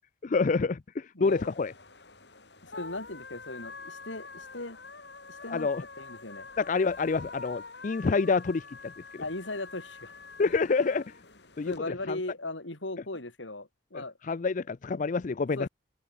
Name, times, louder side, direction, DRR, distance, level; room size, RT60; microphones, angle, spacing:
voice 1, 0.2-1.7 5.5-5.8 6.6-9.2 10.4-11.0 11.6-11.7 12.1-12.2 13.9-15.7, left 4 dB, 45° left, 0.4 m, -28 dB
voice 2, 1.1-1.5 2.6-4.8 5.3-5.7 6.0-6.5 9.2-10.1 11.7-14.1 15.6-15.7, left 2 dB, 90° left, 4.1 m, -38 dB
sound 1, 1.2-11.8, left 4 dB, 65° left, 5.3 m, -46 dB
open air
head